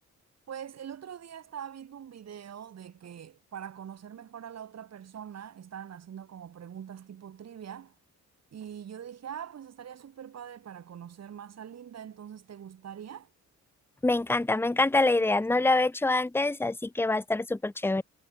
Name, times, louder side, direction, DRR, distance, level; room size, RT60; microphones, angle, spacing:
voice 1, 0.5-7.9 8.5-13.3, right 9 dB, 60° right, 6.6 m, -43 dB
voice 2, 14.0-18.0, left 2 dB, 10° left, 1.0 m, -25 dB
cardioid pair, 90°, 30 cm